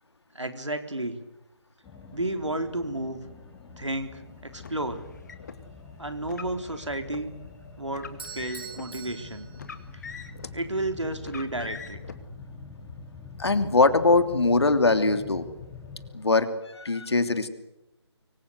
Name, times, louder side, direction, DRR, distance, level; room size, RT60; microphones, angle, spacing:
voice 1, 0.3-1.2 2.1-3.2 3.8-5.0 6.0-7.4 7.8-9.5 10.5-12.0, right 1 dB, 85° right, 7 dB, 3.8 m, -32 dB
sound 1, 1.8-16.1, left 4 dB, 10° left, 6.6 m, -45 dB
Car, 4.6-5.6 6.2-7.3 7.9-8.9 9.5-10.6 11.2-12.1, left 5 dB, 40° left, 2.1 m, -43 dB
Bell / Doorbell, 8.2-10.3, right 6 dB, 50° right, 5.0 m, -44 dB
voice 2, 13.4-15.4 16.1-16.5 16.7-17.5, left 3 dB, 65° left, 9 dB, 3.0 m, -21 dB
25.0 x 24.5 x 8.2 m, 0.91 s
figure-of-eight pair, 155°, 15 cm